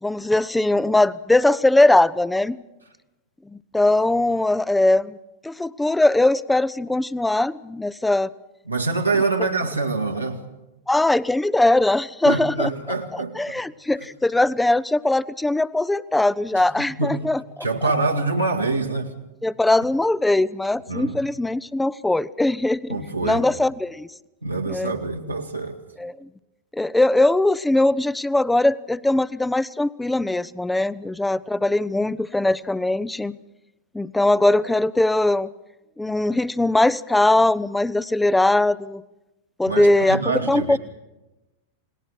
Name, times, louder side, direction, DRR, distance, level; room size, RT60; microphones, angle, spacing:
voice 1, 0.0-2.6 3.5-5.2 5.4-8.3 9.4-9.5 10.9-12.7 13.1-17.4 19.4-24.1 24.7-24.9 26.0-26.1 26.7-33.4 33.9-35.5 36.0-39.0 39.6-40.8, left 2 dB, 5° left, 0.6 m, -20 dB
voice 2, 8.7-10.4 12.3-13.6 16.6-16.7 17.0-17.2 17.6-19.1 20.9-21.2 22.9-23.4 24.4-25.8 39.7-40.8, right 3 dB, 85° right, 2.0 m, -25 dB
29.0 x 19.0 x 4.7 m
figure-of-eight pair, 90°, 0 cm